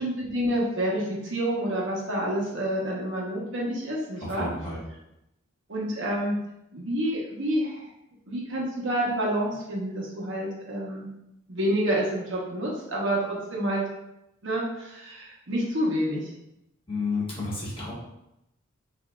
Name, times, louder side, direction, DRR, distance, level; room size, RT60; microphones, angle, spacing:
voice 1, 0.0-4.5 5.7-6.4 6.7-7.9 8.3-11.1 11.5-13.8 14.4-16.3, right 1 dB, 65° right, -3 dB, 1.0 m, -28 dB
voice 2, 4.2-4.8 16.9-17.9, left 3 dB, 25° left, -6 dB, 1.2 m, -31 dB
5.7 x 2.7 x 2.4 m, 0.86 s
head